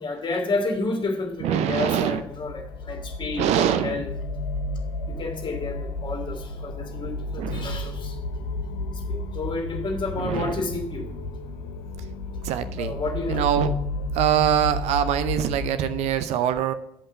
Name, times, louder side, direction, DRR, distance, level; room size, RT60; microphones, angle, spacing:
voice 1, 0.0-4.1 5.1-8.2 9.1-11.1 12.8-13.4, left 3 dB, 40° left, 3 dB, 1.9 m, -30 dB
sound 1, 1.3-16.1, left 2 dB, 65° left, 0.7 m, -32 dB
voice 2, 1.4-2.2 3.4-4.0 7.4-7.8 10.2-10.6 12.4-12.9 13.3-13.7 14.1-16.7, right 10 dB, 60° right, 11 dB, 0.6 m, -24 dB
8.7 x 5.5 x 6.3 m, 0.78 s
figure-of-eight pair, 45°, 13 cm